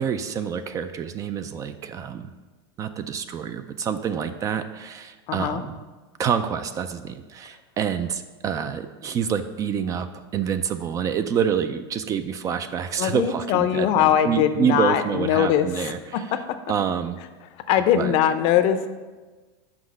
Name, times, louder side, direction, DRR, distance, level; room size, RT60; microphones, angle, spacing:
voice 1, 0.0-2.3 2.8-5.8 6.2-16.3 16.7-17.2 17.9-18.1, right 7 dB, 25° right, 10 dB, 0.3 m, -27 dB
voice 2, 5.3-5.6 13.0-16.6 17.7-18.9, left 10 dB, 45° left, 10 dB, 0.6 m, -21 dB
6.0 x 5.2 x 6.3 m, 1.3 s
supercardioid pair, 135°, 13 cm